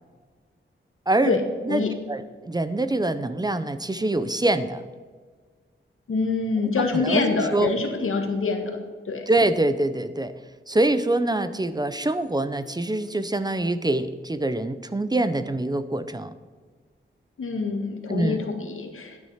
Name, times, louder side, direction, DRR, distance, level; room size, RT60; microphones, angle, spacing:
voice 1, 1.1-1.4 1.6-4.8 6.8-7.7 9.3-10.3 10.7-16.3 18.1-18.4, right 2 dB, 20° right, 11 dB, 0.6 m, -25 dB
voice 2, 6.1-8.8 9.1-9.2 17.4-19.2, left 4 dB, 85° left, 4 dB, 1.8 m, -25 dB
12.5 x 9.6 x 5.7 m, 1.5 s
wide cardioid pair, 145°, 21 cm